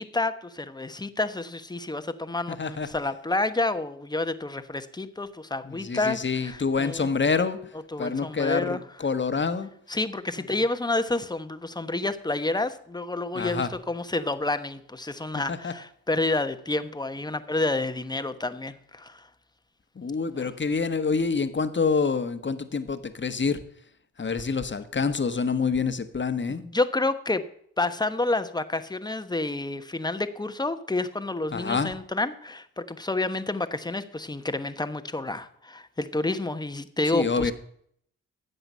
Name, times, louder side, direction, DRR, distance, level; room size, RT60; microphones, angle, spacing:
voice 1, 0.0-7.1 7.9-8.8 9.9-19.3 20.4-20.5 26.5-27.4 27.8-37.5, left 2 dB, 10° left, 11 dB, 1.1 m, -29 dB
voice 2, 2.5-2.9 5.6-7.6 8.0-9.7 13.3-13.7 15.5-15.7 19.9-23.6 24.2-26.6 31.5-31.9 37.1-37.5, left 5 dB, 30° left, 9 dB, 1.3 m, -27 dB
12.5 x 7.9 x 5.5 m, 0.67 s
supercardioid pair, 50°, 36 cm